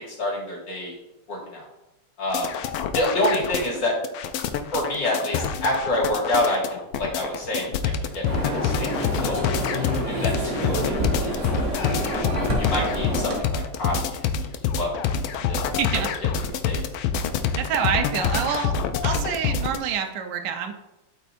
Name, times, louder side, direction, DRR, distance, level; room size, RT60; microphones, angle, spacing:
voice 1, 0.2-0.9 1.3-1.6 2.2-2.5 2.9-3.9 4.7-9.4 9.8-11.0 11.4-11.6 12.6-14.3 14.7-14.9 15.5-15.7 15.9-16.0 16.6-16.8, left 1 dB, 55° left, -3 dB, 2.6 m, -27 dB
sound 1, 2.3-19.8, left 7 dB, 75° left, 1.3 m, -26 dB
sound 2, 8.2-13.4, equal, 25° right, 1.2 m, -27 dB
voice 2, 15.8-16.1 17.6-18.8 19.0-20.7, right 7 dB, 65° right, 4 dB, 1.2 m, -26 dB
12.5 x 4.6 x 2.5 m, 0.96 s
omnidirectional pair, 2.4 m